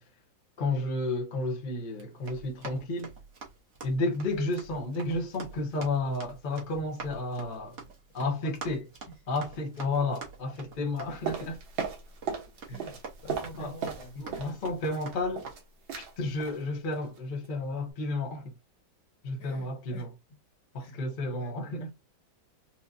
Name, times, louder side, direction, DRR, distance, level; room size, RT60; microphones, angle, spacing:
voice 1, 0.6-3.1 3.8-7.8 8.1-8.8 9.3-11.6 13.5-13.8 14.2-15.5 16.0-18.5 19.2-20.1 20.7-21.9, left 2 dB, 40° left, 0.8 m, -32 dB
Run, 1.9-15.5, right 4 dB, 45° right, 1.2 m, -47 dB
voice 2, 8.2-9.2 12.7-14.5 19.4-20.1 20.8-21.0 21.3-21.6, left 1 dB, 70° left, 2.0 m, -47 dB
sound 1, 11.3-12.5 12.8-14.6 14.8-15.6 15.9-16.1 16.4-16.6 16.9-17.2 17.4-17.5, right 6 dB, 80° right, 1.9 m, -36 dB
4.5 x 2.3 x 2.6 m
omnidirectional pair, 2.1 m